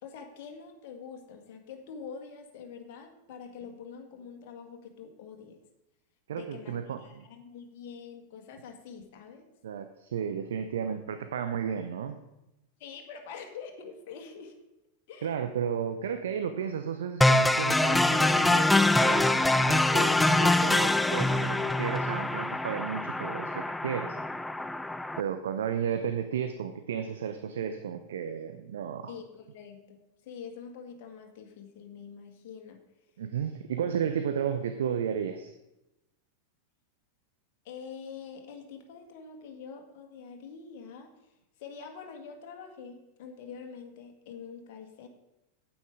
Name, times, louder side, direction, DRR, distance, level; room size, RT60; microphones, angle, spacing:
voice 1, 0.0-5.6 6.3-9.5 12.8-14.5 15.1-15.3 20.0-20.2 29.1-32.8 37.7-41.1 41.6-45.1, left 6 dB, 50° left, 4 dB, 1.8 m, -45 dB
voice 2, 6.3-7.2 9.6-12.2 15.2-24.2 25.2-29.1 33.2-35.5, right 8 dB, 60° right, 9 dB, 0.6 m, -33 dB
sound 1, 17.2-25.2, left 2 dB, 5° left, 0.4 m, -24 dB
9.2 x 8.7 x 4.8 m, 0.94 s
figure-of-eight pair, 90°, 0 cm